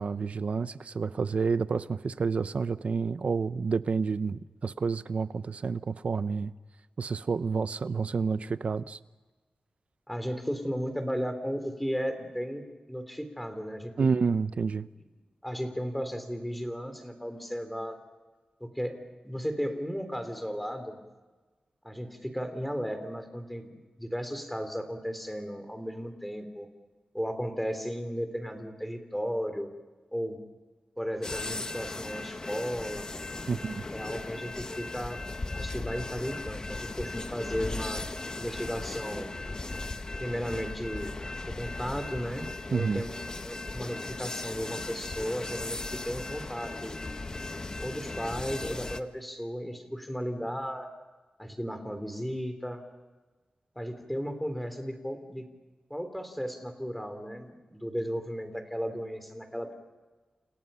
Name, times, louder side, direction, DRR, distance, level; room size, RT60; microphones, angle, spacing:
voice 1, 0.0-6.5 7.0-9.0 14.0-14.9 33.5-33.8 42.7-43.1, right 5 dB, 60° right, 0.8 m, -29 dB
voice 2, 10.1-13.9 15.4-18.0 18.6-21.0 21.8-26.7 27.1-29.7 30.1-30.4 31.0-33.1 33.9-35.2 35.5-39.5 40.2-43.1 43.4-46.9 47.8-50.9 51.4-52.8 53.8-55.5 55.9-59.7, equal, 5° left, 3.5 m, -35 dB
sound 1, 31.2-49.0, left 2 dB, 30° left, 1.2 m, -37 dB
29.5 x 29.0 x 5.7 m
wide cardioid pair, 120°, 2 cm